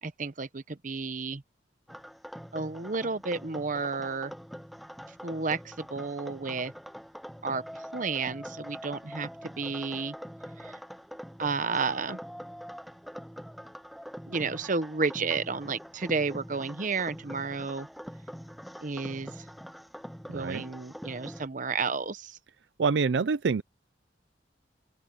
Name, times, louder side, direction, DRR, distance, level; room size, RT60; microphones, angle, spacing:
voice 1, 0.0-1.4 2.5-4.3 5.2-6.7 7.4-7.6 7.9-10.2 10.6-10.8 11.4-12.2 14.3-17.9 18.8-19.5 20.3-22.4, right 4 dB, 45° right, 0.9 m, -32 dB
sound 1, 1.9-21.5, equal, ahead, 0.5 m, -44 dB
voice 2, 20.3-20.6 22.8-23.6, right 5 dB, 70° right, 0.5 m, -26 dB
open air
head